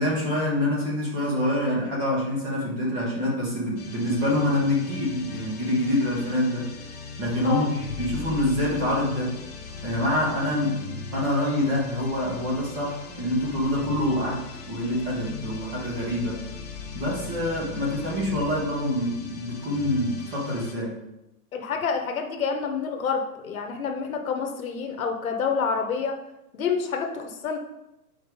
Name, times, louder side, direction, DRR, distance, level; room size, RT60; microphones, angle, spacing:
voice 1, 0.0-6.7 7.2-9.3 9.8-16.4 16.9-21.0, left 1 dB, 20° right, -3 dB, 1.5 m, -26 dB
sound 1, 3.8-20.8, left 5 dB, 25° left, 0.6 m, -39 dB
voice 2, 21.5-26.2 26.5-27.6, left 6 dB, 60° left, 4 dB, 1.1 m, -28 dB
7.0 x 4.4 x 4.8 m, 0.91 s
hypercardioid pair, 175°, 46 cm